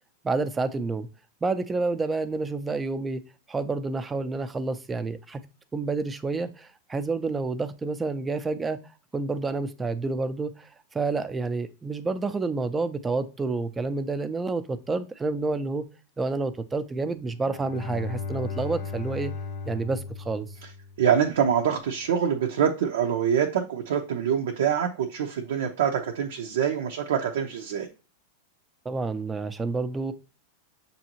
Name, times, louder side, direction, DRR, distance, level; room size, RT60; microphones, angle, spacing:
voice 1, 0.2-1.1 1.4-3.2 3.5-5.4 5.7-8.8 9.1-10.7 10.9-15.9 16.2-19.3 19.6-20.5 28.8-30.1, right 3 dB, 15° right, 0.5 m, -29 dB
Bowed string instrument, 17.3-21.3, left 4 dB, 70° left, 0.6 m, -36 dB
voice 2, 21.0-27.9, right 8 dB, 80° right, 0.6 m, -25 dB
6.9 x 2.7 x 2.9 m
hypercardioid pair, 115°, 0 cm